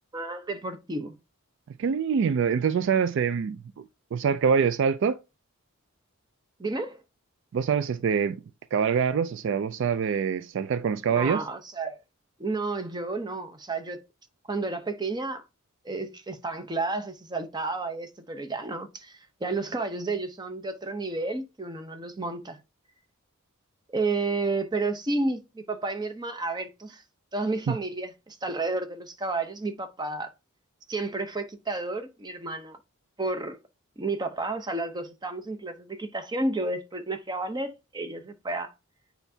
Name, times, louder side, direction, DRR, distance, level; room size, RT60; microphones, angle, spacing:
voice 1, 0.1-1.2 6.6-7.0 11.1-12.0 12.4-14.0 14.5-15.4 15.8-22.6 23.9-27.0 27.3-30.3 30.9-32.8 33.2-33.6 34.0-38.7, right 3 dB, 20° right, 0.7 m, -31 dB
voice 2, 1.8-3.8 4.1-5.2 7.5-8.4 8.7-11.4 27.7-27.8, right 6 dB, 60° right, 0.3 m, -25 dB
8.9 x 4.5 x 2.7 m
head